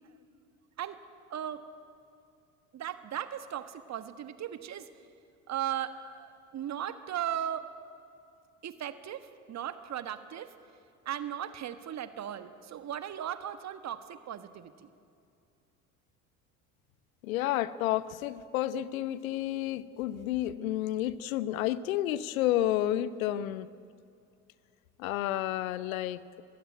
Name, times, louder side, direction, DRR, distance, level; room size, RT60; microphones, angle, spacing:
voice 1, 1.3-1.6 2.7-4.9 5.5-7.7 8.6-10.5 11.0-14.9, right 10 dB, 40° right, 11 dB, 1.5 m, -37 dB
voice 2, 17.2-23.7 25.0-26.4, left 13 dB, 70° left, 17 dB, 0.9 m, -31 dB
22.5 x 15.5 x 9.5 m, 2.5 s
figure-of-eight pair, 65°, 43 cm